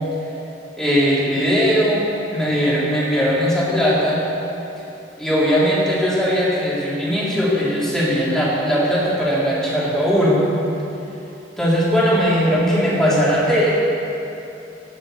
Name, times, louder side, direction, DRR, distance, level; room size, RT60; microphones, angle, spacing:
voice 1, 0.8-2.0 2.3-4.2 5.2-10.4 11.6-13.7, equal, 5° left, -8 dB, 3.6 m, -19 dB
17.0 x 6.9 x 6.8 m, 2.9 s
head